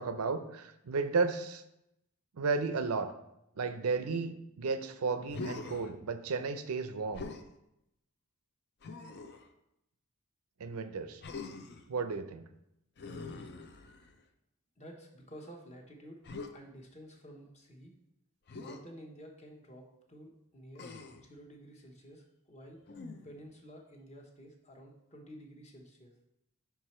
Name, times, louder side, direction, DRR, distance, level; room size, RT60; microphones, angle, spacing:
voice 1, 0.0-1.6 2.4-3.1 3.6-7.3 10.6-11.2 11.9-12.5, right 4 dB, 85° right, 10 dB, 0.5 m, -33 dB
Human voice, 5.3-5.9 7.1-7.5 8.8-9.5 11.2-11.9 13.0-14.2 16.2-16.5 18.5-18.8 20.8-21.3 22.9-23.4, left 3 dB, 50° left, 0.5 m, -43 dB
voice 2, 14.8-16.2 16.5-17.9 18.6-20.9 21.1-22.8 23.2-26.1, equal, 30° left, 1 dB, 1.0 m, -51 dB
5.7 x 4.7 x 4.3 m, 0.83 s
head